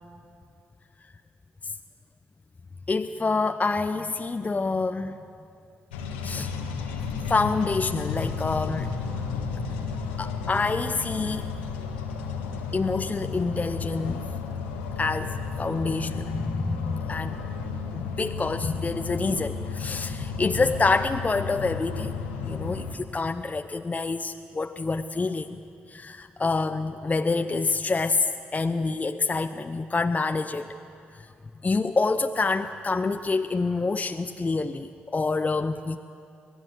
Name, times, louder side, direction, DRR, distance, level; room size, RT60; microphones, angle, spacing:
voice 1, 2.9-5.2 6.2-7.0 7.3-8.9 10.2-11.5 12.7-14.2 15.0-17.4 17.9-25.6 25.9-30.7 31.1-31.3 31.6-36.0, left 3 dB, 30° left, 7 dB, 0.8 m, -27 dB
sound 1, 5.9-22.9, left 5 dB, 85° left, 1.7 m, -33 dB
27.0 x 18.5 x 7.9 m, 2.5 s
hypercardioid pair, 40°, 5 cm